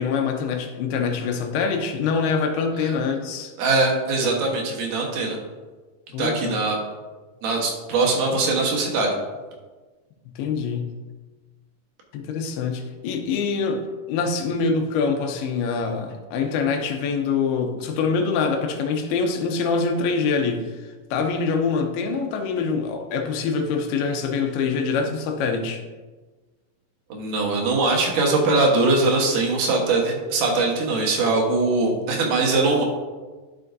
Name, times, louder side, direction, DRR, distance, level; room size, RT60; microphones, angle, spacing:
voice 1, 0.0-3.5 6.1-6.5 10.4-10.9 12.1-25.8, left 5 dB, 90° left, 4 dB, 2.8 m, -25 dB
voice 2, 3.6-5.4 6.2-6.8 7.4-9.1 27.1-32.8, right 3 dB, 65° right, 0 dB, 2.6 m, -21 dB
11.0 x 6.2 x 2.6 m, 1.3 s
omnidirectional pair, 4.3 m